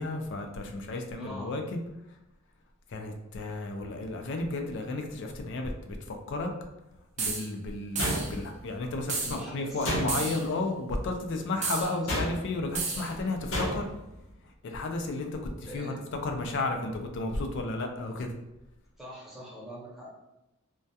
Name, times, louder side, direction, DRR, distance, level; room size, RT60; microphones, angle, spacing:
voice 1, 0.0-1.8 2.9-6.5 7.2-13.9 14.6-15.3 15.7-15.9 16.2-18.3, left 2 dB, 65° left, 4 dB, 0.4 m, -33 dB
voice 2, 1.1-1.6 9.1-9.9 11.8-12.2 12.9-13.2 15.6-16.0 19.0-20.1, equal, ahead, -6 dB, 0.7 m, -43 dB
sound 1, 7.2-7.5 8.0-8.3 9.1-9.4 10.1-10.5 11.6-11.9 12.7-13.1, right 4 dB, 35° right, 0.4 m, -32 dB
sound 2, 8.0-8.7 9.8-10.5 12.1-12.6 13.5-14.0, equal, 85° left, 0.7 m, -31 dB
2.3 x 2.2 x 2.7 m, 0.93 s
head